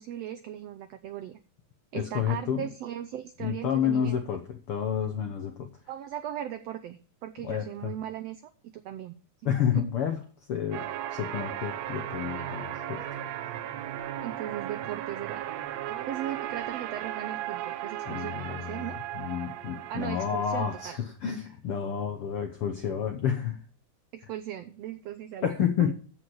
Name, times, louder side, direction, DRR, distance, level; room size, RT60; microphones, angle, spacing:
voice 1, 0.0-1.4 1.9-4.2 5.9-8.4 8.8-9.1 9.4-9.9 12.4-12.5 14.2-15.4 16.1-19.0 19.9-20.9 24.1-25.9, right 11 dB, 85° right, 9 dB, 1.4 m, -38 dB
voice 2, 1.9-2.7 3.4-5.7 7.4-8.0 9.4-10.2 10.5-13.1 18.0-23.6 25.4-25.9, left 8 dB, 75° left, 5 dB, 1.3 m, -30 dB
sound 1, 10.7-21.0, right 12 dB, 70° right, 1.7 m, -36 dB
14.5 x 4.8 x 7.6 m, 0.42 s
omnidirectional pair, 3.8 m